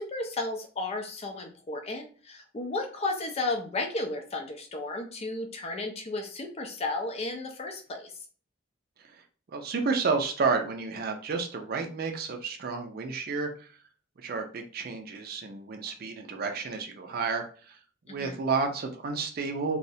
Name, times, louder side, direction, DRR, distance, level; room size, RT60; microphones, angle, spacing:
voice 1, 0.0-8.1 18.1-18.4, left 2 dB, 30° left, 3 dB, 0.4 m, -33 dB
voice 2, 9.5-13.7 14.2-17.8 18.1-19.8, right 4 dB, 50° right, 4 dB, 0.4 m, -31 dB
2.3 x 2.0 x 2.6 m, 0.41 s
head